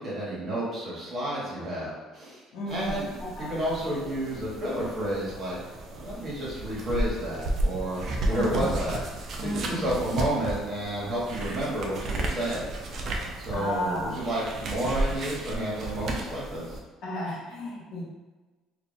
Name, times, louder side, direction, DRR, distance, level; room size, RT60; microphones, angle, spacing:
voice 1, 0.0-5.6 5.9-9.0 9.4-12.7 13.4-16.8, right 1 dB, 35° right, -6 dB, 1.5 m, -31 dB
voice 2, 2.5-3.6 8.3-8.7 9.4-10.0 13.5-14.3 17.0-18.0, left 1 dB, 70° left, -4 dB, 1.1 m, -33 dB
sound 1, 2.7-16.8, right 1 dB, 50° right, 0.5 m, -33 dB
2.7 x 2.6 x 4.0 m, 1.2 s
cardioid pair, 135°, 0 cm